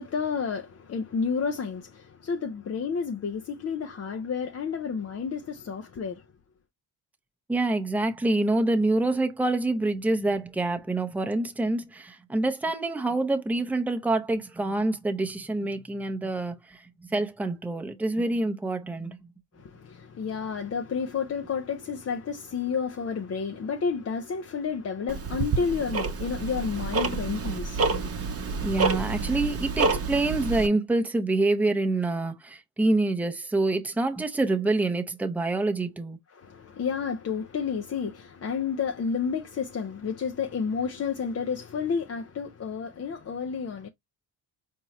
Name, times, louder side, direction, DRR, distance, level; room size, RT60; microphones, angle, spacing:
voice 1, 0.0-6.2 19.6-28.8 36.3-43.9, left 6 dB, 35° left, 0.6 m, -31 dB
voice 2, 7.5-16.8 17.1-19.2 28.6-36.2, right 2 dB, 5° right, 0.7 m, -26 dB
Tick-tock, 25.1-30.7, right 4 dB, 30° right, 0.9 m, -28 dB
4.4 x 2.9 x 2.9 m
cardioid pair, 75°, 46 cm